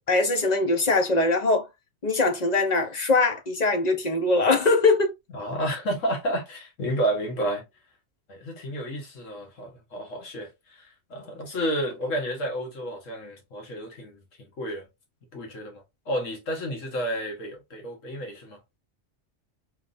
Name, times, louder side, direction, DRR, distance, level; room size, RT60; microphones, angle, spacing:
voice 1, 0.1-1.7 2.0-5.1, left 3 dB, 35° left, 0.9 m, -22 dB
voice 2, 5.3-7.6 8.3-14.2 14.6-14.9 15.3-18.6, right 1 dB, 90° left, 1.8 m, -31 dB
4.8 x 3.3 x 2.6 m
omnidirectional pair, 1.3 m